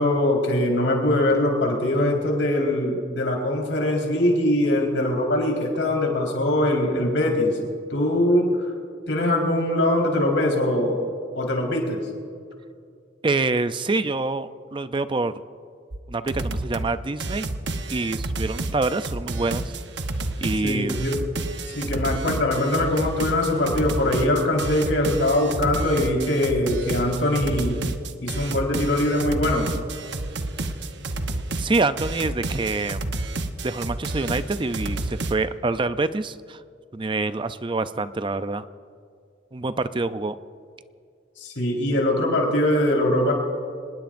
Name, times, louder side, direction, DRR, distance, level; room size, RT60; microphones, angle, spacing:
voice 1, 0.0-7.6 7.9-8.6 9.1-11.0 11.3-12.0 20.6-21.2 21.7-27.8 28.2-29.7 41.4-43.3, left 1 dB, 80° left, 0 dB, 4.3 m, -22 dB
voice 2, 13.2-15.3 16.1-17.5 17.9-19.7 20.4-21.0 30.6-30.7 31.6-33.1 33.6-36.6 36.9-38.7 39.5-40.4, right 3 dB, 25° right, 12 dB, 0.5 m, -26 dB
sound 1, 15.9-16.0 16.3-16.9 17.2-35.4, right 2 dB, 65° right, 1.0 m, -30 dB
26.0 x 19.5 x 2.6 m, 2.2 s
head